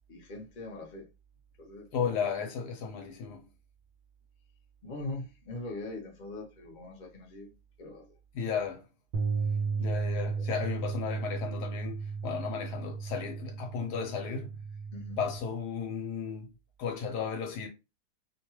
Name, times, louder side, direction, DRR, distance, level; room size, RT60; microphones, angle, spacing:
voice 1, 0.1-1.1 1.6-2.3 4.8-7.5 7.8-8.2 9.7-10.8 14.9-15.2, left 2 dB, 40° left, 0.7 m, -43 dB
voice 2, 1.9-3.5 8.3-8.9 9.8-14.6 15.2-16.5 16.8-17.7, left 6 dB, 75° left, 1.1 m, -34 dB
sound 1, 9.1-15.4, right 5 dB, 75° right, 1.1 m, -34 dB
2.7 x 2.2 x 2.9 m
omnidirectional pair, 1.8 m